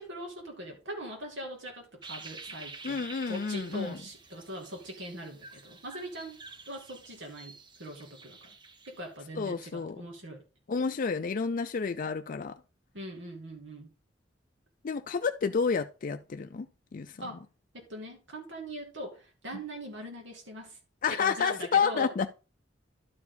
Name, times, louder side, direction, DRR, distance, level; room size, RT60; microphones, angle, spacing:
voice 1, 0.0-6.4 6.7-7.5 7.8-8.4 8.9-10.4 12.9-13.9 17.2-17.4 17.7-20.8 21.2-22.1, equal, 80° right, 2.4 m, -41 dB
sound 1, 2.0-9.1, right 3 dB, 25° right, 0.8 m, -49 dB
voice 2, 2.8-4.0 9.3-10.0 10.7-12.6 14.8-16.7 16.9-17.2 21.0-22.3, left 5 dB, 50° left, 0.4 m, -30 dB
11.5 x 4.8 x 3.9 m
head